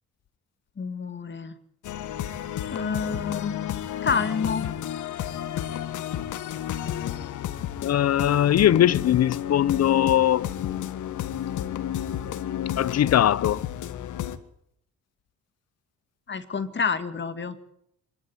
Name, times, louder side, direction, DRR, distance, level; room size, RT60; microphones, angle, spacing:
voice 1, 0.8-1.5 2.7-3.6 4.0-4.7 16.3-17.7, left 5 dB, 40° left, 2.3 m, -28 dB
sound 1, 1.8-14.4, left 11 dB, 80° left, 1.8 m, -31 dB
voice 2, 7.8-10.5 12.8-13.6, left 11 dB, 55° left, 0.9 m, -20 dB
26.0 x 11.5 x 9.9 m
cardioid pair, 90°, 30 cm